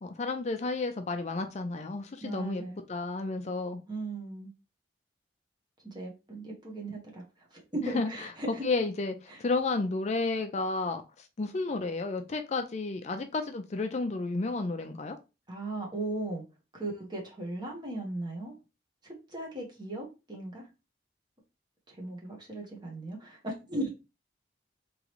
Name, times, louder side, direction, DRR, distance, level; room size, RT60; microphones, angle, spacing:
voice 1, 0.0-2.6 2.9-3.8 7.8-15.2, left 3 dB, 40° left, 0.4 m, -32 dB
voice 2, 2.2-2.8 3.9-4.5 5.8-7.2 7.5-8.6 9.3-9.4 15.5-16.4 16.7-18.6 19.0-20.6 21.9-23.9, right 2 dB, 25° right, 1.3 m, -37 dB
3.7 x 3.1 x 3.0 m
head